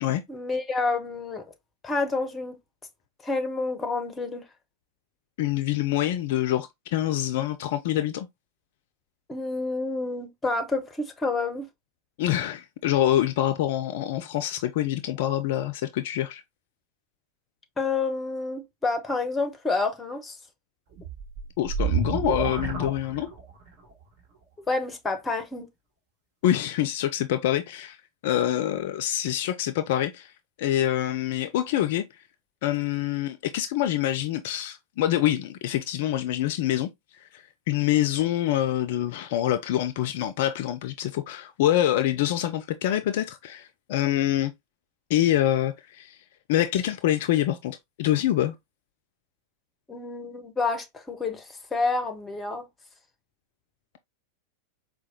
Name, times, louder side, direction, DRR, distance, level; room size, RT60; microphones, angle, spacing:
voice 1, 0.3-1.4 1.8-2.6 3.2-4.4 9.3-11.7 17.8-20.4 24.6-25.7 49.9-52.7, left 3 dB, 15° left, 0.8 m, -29 dB
voice 2, 5.4-8.3 12.2-16.4 21.6-23.3 26.4-28.0 28.2-30.3 30.6-32.1 32.6-44.5 45.1-46.2 46.5-48.6, left 12 dB, 50° left, 0.3 m, -26 dB
sound 1, 21.0-23.7, right 6 dB, 40° right, 1.3 m, -29 dB
4.6 x 2.2 x 2.7 m
figure-of-eight pair, 90°, 0 cm